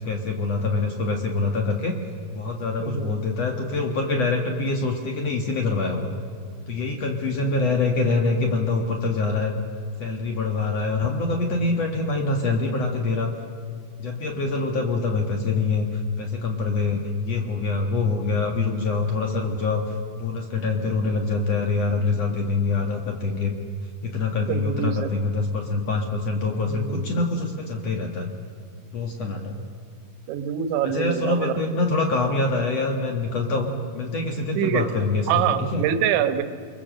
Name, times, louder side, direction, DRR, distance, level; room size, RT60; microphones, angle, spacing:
voice 1, 0.0-1.9 2.3-6.1 6.7-9.5 10.0-13.3 14.0-23.5 24.0-28.3 28.9-29.6 30.8-35.8, left 3 dB, 90° left, 2 dB, 1.4 m, -25 dB
voice 2, 2.8-3.1 24.5-25.1 26.7-27.3 30.3-31.5 34.6-34.9 35.3-36.4, right 10 dB, 75° right, 9 dB, 3.3 m, -25 dB
30.0 x 22.0 x 7.7 m, 2.2 s
omnidirectional pair, 5.8 m